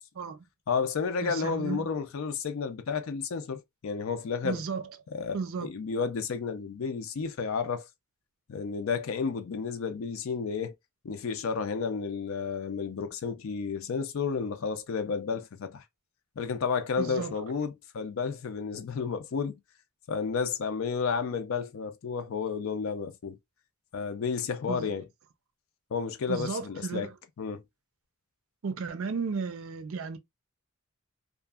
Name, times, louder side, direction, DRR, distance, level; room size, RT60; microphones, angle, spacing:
voice 1, 0.7-4.6 5.1-7.9 8.5-10.7 11.0-15.8 16.4-19.6 20.1-23.4 23.9-25.1 25.9-27.1 27.4-27.6, left 5 dB, 65° left, 0.4 m, -31 dB
voice 2, 1.2-1.9 4.4-4.9 5.3-5.7 17.0-17.3 24.7-24.9 26.3-27.1 28.6-30.2, right 5 dB, 65° right, 0.4 m, -34 dB
2.7 x 2.5 x 2.3 m
head